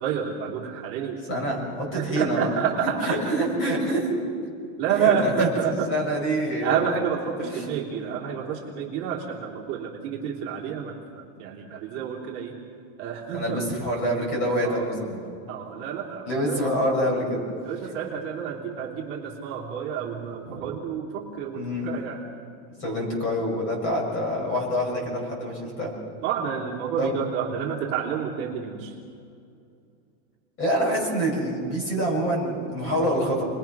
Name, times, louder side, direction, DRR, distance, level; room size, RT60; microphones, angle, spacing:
voice 1, 0.0-1.2 1.9-3.2 4.8-5.9 6.6-10.9 11.4-12.6 13.0-13.6 14.6-14.8 15.5-16.6 17.6-22.2 26.2-28.9, right 7 dB, 30° right, -4 dB, 3.1 m, -29 dB
voice 2, 1.3-2.5 3.0-4.2 4.9-6.9 7.4-7.7 13.3-15.2 16.3-17.4 20.5-20.6 21.5-21.9 22.8-25.9 27.0-27.1 30.6-33.5, equal, 30° left, 0 dB, 6.8 m, -26 dB
29.0 x 21.5 x 6.1 m, 2.4 s
supercardioid pair, 175°, 43 cm